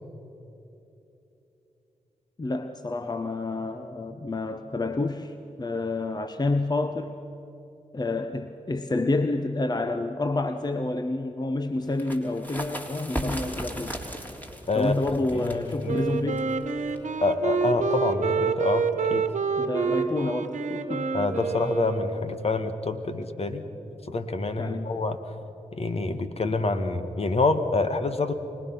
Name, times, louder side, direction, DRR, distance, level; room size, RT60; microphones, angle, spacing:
voice 1, 2.4-7.1 7.9-14.0 14.7-16.5 19.6-21.1 24.6-24.9, left 2 dB, 30° left, 9 dB, 1.0 m, -29 dB
sound 1, 11.9-17.2, equal, 15° left, 3.4 m, -37 dB
voice 2, 15.3-16.0 17.2-19.3 21.1-23.7 24.1-25.2 25.7-28.3, left 3 dB, 50° left, 8 dB, 1.6 m, -27 dB
Wind instrument woodwind instrument, 15.9-22.5, right 5 dB, 65° right, 1.3 m, -28 dB
24.5 x 19.0 x 5.9 m, 3.0 s
supercardioid pair, 40°, 13 cm